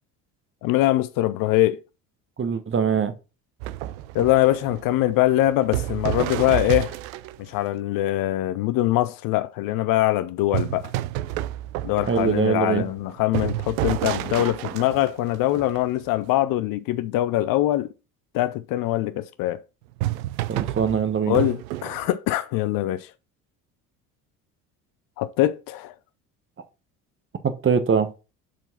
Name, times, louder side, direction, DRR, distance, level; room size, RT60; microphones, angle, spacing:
voice 1, 0.6-1.8 4.1-7.0 7.4-10.9 11.8-17.9 18.3-19.6 21.3-23.1 25.2-25.9, left 15 dB, 50° left, 0.6 m, -23 dB
voice 2, 2.4-3.1 12.1-12.8 20.5-21.4 27.4-28.1, right 6 dB, 25° right, 1.2 m, -22 dB
sound 1, 3.6-7.6 10.5-16.2 19.9-22.1, right 15 dB, 65° right, 0.6 m, -30 dB
6.1 x 4.5 x 5.8 m
figure-of-eight pair, 60°, 46 cm